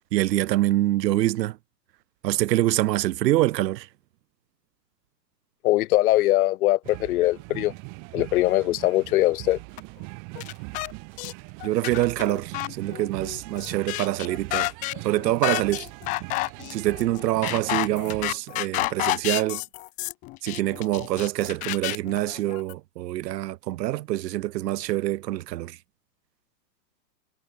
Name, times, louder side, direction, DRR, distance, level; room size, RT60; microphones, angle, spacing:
voice 1, 0.1-1.6 2.2-3.9 11.6-14.7 15.0-15.9 16.7-19.6 20.4-25.8, right 15 dB, 85° right, 0.5 m, -25 dB
voice 2, 5.6-7.7 8.1-9.6, left 16 dB, 60° left, 0.6 m, -21 dB
sound 1, 6.8-18.4, right 39 dB, 40° right, 2.1 m, -41 dB
sound 2, 9.8-9.9 10.4-10.9 11.2-11.3 11.6-22.7, left 22 dB, 20° left, 0.4 m, -30 dB
hypercardioid pair, 125°, 48 cm